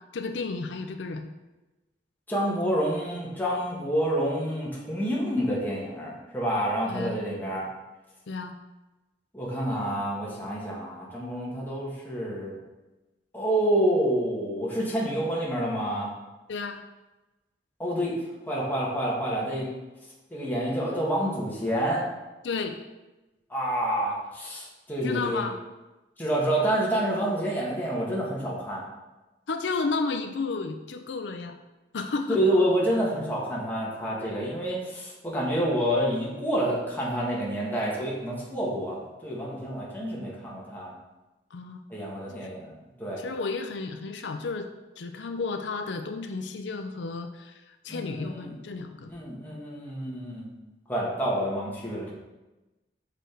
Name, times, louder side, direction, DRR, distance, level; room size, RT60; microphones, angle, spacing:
voice 1, 0.1-1.3 6.9-7.1 8.3-8.5 16.5-16.8 22.4-22.8 25.0-25.6 29.5-31.5 31.9-32.4 41.5-41.8 43.2-44.7 45.0-49.1, left 4 dB, 85° left, 6 dB, 0.5 m, -32 dB
voice 2, 2.3-7.7 9.3-12.6 13.3-16.1 17.8-18.1 18.5-19.7 20.3-22.1 23.5-25.4 26.2-28.8 32.4-40.9 41.9-43.3 47.9-48.6 49.1-50.5 50.9-52.1, right 1 dB, 10° left, -5 dB, 1.7 m, -28 dB
6.1 x 5.1 x 4.5 m, 1.1 s
head